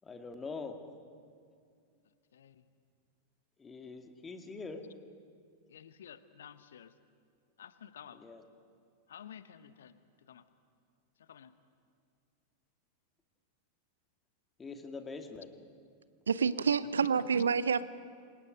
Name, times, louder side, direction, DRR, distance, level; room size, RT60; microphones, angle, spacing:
voice 1, 0.0-0.8 3.6-4.9 8.1-8.4 14.6-15.5, left 4 dB, 15° left, 2.2 m, -43 dB
voice 2, 2.3-2.6 5.7-6.9 7.6-8.2 9.1-9.9 10.3-10.4 11.3-11.5 16.7-17.1, left 9 dB, 65° left, 1.0 m, -51 dB
voice 3, 16.3-17.8, right 6 dB, 70° right, 0.7 m, -28 dB
28.0 x 25.0 x 5.3 m
figure-of-eight pair, 90°, 0 cm